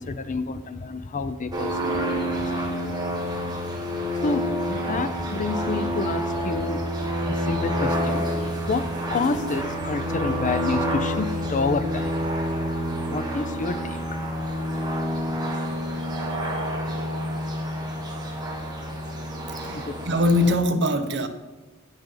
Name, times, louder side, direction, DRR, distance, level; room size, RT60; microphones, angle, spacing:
voice 1, 0.0-2.8 4.2-7.0 7.3-12.2 13.1-14.2 19.7-20.0, left 3 dB, 35° left, 12 dB, 0.5 m, -29 dB
sound 1, 1.5-20.5, equal, 20° right, 1.7 m, -28 dB
voice 2, 19.5-21.3, left 1 dB, 55° right, 8 dB, 0.9 m, -23 dB
17.0 x 6.7 x 3.9 m, 1.1 s
head